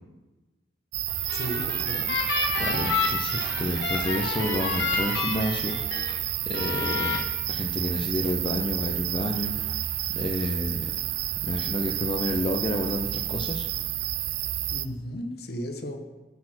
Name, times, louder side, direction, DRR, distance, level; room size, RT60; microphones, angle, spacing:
sound 1, 0.9-14.9, right 13 dB, 70° right, 0.4 m, -30 dB
sound 2, 1.1-6.1 6.5-7.2, left 4 dB, 85° left, 1.6 m, -30 dB
voice 1, 1.3-2.1 14.7-16.0, equal, 60° left, 5 dB, 1.0 m, -35 dB
voice 2, 2.6-5.8 6.5-7.2 7.5-9.8 10.1-10.9 11.4-13.7, left 1 dB, 30° left, 3 dB, 0.5 m, -30 dB
11.0 x 4.2 x 6.0 m, 1.1 s
head